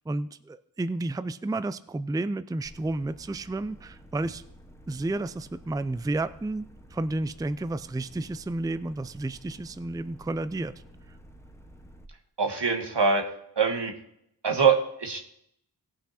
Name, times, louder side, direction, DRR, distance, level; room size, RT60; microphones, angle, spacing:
voice 1, 0.1-4.4 4.9-10.8, right 2 dB, 10° right, 14 dB, 0.4 m, -31 dB
sound 1, 2.6-12.1, equal, 5° left, 1.0 m, -51 dB
voice 2, 12.4-13.2 13.6-13.9 14.4-15.2, right 5 dB, 85° right, 3 dB, 1.6 m, -23 dB
17.5 x 5.9 x 4.2 m, 0.75 s
wide cardioid pair, 50°, 41 cm